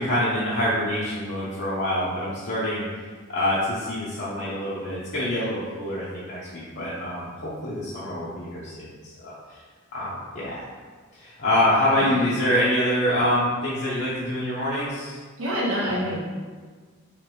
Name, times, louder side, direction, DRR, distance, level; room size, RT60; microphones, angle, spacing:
voice 1, 0.0-2.9 3.3-9.3 9.9-10.6 11.2-15.2, left 1 dB, 50° left, -9 dB, 0.7 m, -25 dB
voice 2, 15.4-16.2, equal, 65° right, -7 dB, 1.3 m, -26 dB
5.0 x 3.1 x 3.0 m, 1.5 s
head